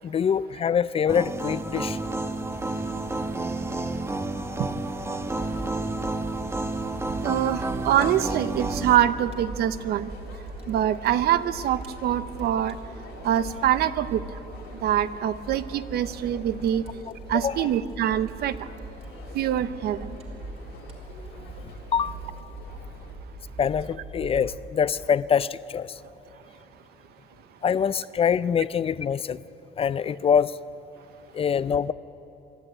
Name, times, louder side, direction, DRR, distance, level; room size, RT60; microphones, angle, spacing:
voice 1, 0.0-2.0 17.4-17.7 21.9-22.2 23.6-26.0 27.6-29.4 29.8-30.6 31.3-31.9, left 7 dB, 35° left, 17 dB, 0.4 m, -24 dB
sound 1, 1.1-9.0, right 2 dB, 15° right, 1.1 m, -30 dB
Fire, 5.2-24.5, right 3 dB, 35° right, 3.4 m, -41 dB
voice 2, 7.2-10.1 10.7-12.8 13.2-14.4 14.8-16.8 17.3-18.6 19.3-20.2, right 11 dB, 70° right, 14 dB, 0.8 m, -24 dB
sound 2, 7.8-23.2, left 4 dB, 90° left, 3.1 m, -48 dB
24.5 x 12.0 x 8.9 m, 3.0 s
cardioid pair, 110°, 17 cm